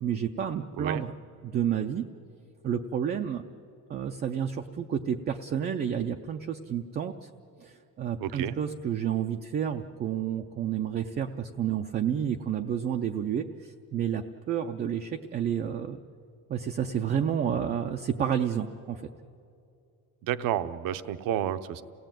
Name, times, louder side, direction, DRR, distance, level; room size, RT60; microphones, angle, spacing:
voice 1, 0.0-1.1 1.4-2.1 2.6-3.4 3.9-7.3 7.6-16.0 16.5-19.0, right 8 dB, 25° right, 5 dB, 0.5 m, -30 dB
voice 2, 8.2-8.5 20.2-21.8, right 11 dB, 60° right, 11 dB, 0.8 m, -30 dB
28.0 x 17.0 x 9.1 m, 2.6 s
cardioid pair, 180°, 38 cm